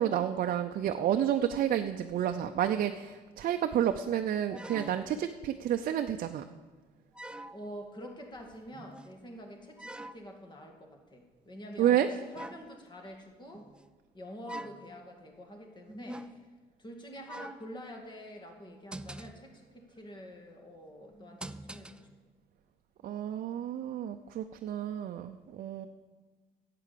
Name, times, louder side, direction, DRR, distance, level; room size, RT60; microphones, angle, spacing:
voice 1, 0.0-6.4 11.8-12.1 23.0-25.9, right 10 dB, 55° right, 6 dB, 0.6 m, -30 dB
sound 1, 4.5-5.3 6.3-6.4 7.1-7.7 8.7-9.2 9.8-10.3 12.3-12.7 13.5-13.9 14.5-15.0 15.9-16.6 17.3-17.7 18.6-19.5 21.1-22.2 23.0-23.2, right 1 dB, 5° right, 0.4 m, -45 dB
voice 2, 7.5-12.0 12.3-13.7 14.1-16.3 16.8-22.1, equal, 25° left, 2 dB, 2.3 m, -47 dB
11.0 x 7.7 x 8.5 m, 1.4 s
cardioid pair, 110°, 17 cm